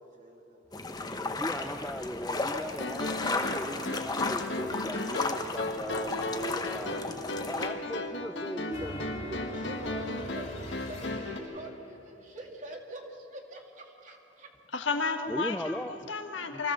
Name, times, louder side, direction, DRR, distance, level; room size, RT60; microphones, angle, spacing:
voice 1, 0.0-1.1 9.0-14.5, right 1 dB, 40° right, 1 dB, 2.3 m, -45 dB
sound 1, 0.7-7.7, left 3 dB, 20° left, 1.0 m, -34 dB
voice 2, 1.2-7.0 7.5-9.0 15.3-15.9 16.5-16.6, equal, 5° left, 7 dB, 0.4 m, -38 dB
sound 2, 2.8-11.4, left 1 dB, 75° left, 1.5 m, -35 dB
sound 3, 8.7-11.9, left 1 dB, 40° left, 2.4 m, -42 dB
voice 3, 14.7-16.7, left 4 dB, 90° left, 5 dB, 1.6 m, -32 dB
24.5 x 15.5 x 6.9 m, 2.9 s
head